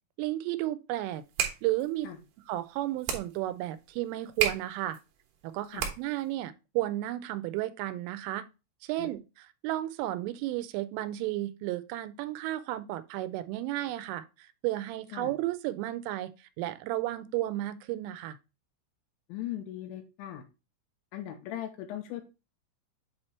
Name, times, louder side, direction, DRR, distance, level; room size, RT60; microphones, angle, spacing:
voice 1, 0.2-1.2 1.6-2.1 2.5-5.0 5.4-8.5 8.8-18.4, right 15 dB, 85° right, 3.0 m, -33 dB
sound 1, 1.1-6.3, right 9 dB, 70° right, 2.6 m, -35 dB
voice 2, 19.3-20.4 21.1-22.2, left 12 dB, 80° left, 2.8 m, -38 dB
8.2 x 2.9 x 4.3 m
omnidirectional pair, 5.7 m